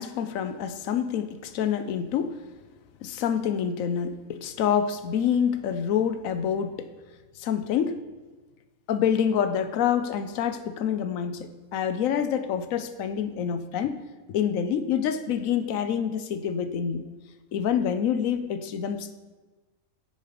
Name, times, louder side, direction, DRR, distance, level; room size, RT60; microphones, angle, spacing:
voice 1, 0.0-2.4 3.0-6.9 7.4-8.0 8.9-14.0 14.3-17.0 17.5-19.1, left 8 dB, 70° left, 10 dB, 1.0 m, -27 dB
9.4 x 5.2 x 5.2 m, 1.2 s
omnidirectional pair, 1.5 m